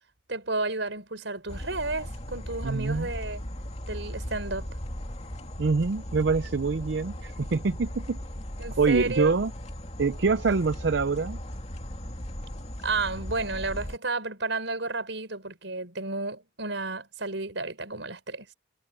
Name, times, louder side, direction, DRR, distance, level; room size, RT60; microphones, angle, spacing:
voice 1, 0.3-3.4 3.9-4.7 8.6-9.4 12.8-18.5, right 3 dB, 80° right, 5.3 m, -32 dB
sound 1, 1.5-14.0, equal, 35° left, 2.5 m, -37 dB
voice 2, 2.6-3.1 5.6-8.2 8.8-9.5 10.0-11.4, right 4 dB, 65° right, 0.5 m, -25 dB
head